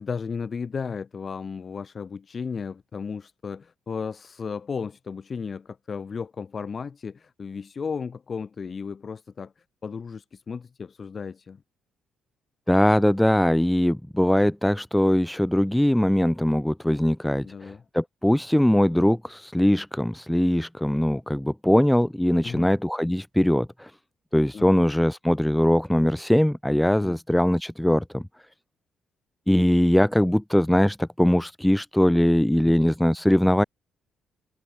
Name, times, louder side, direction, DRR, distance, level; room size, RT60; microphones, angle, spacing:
voice 1, 0.0-9.5 9.8-11.6 17.4-17.8 22.4-22.7 24.5-24.8 27.0-27.2, left 5 dB, 40° left, 0.7 m, -34 dB
voice 2, 12.7-23.9 24.3-28.2 29.5-33.6, left 1 dB, 5° left, 0.4 m, -21 dB
cardioid pair, 90°, 0 cm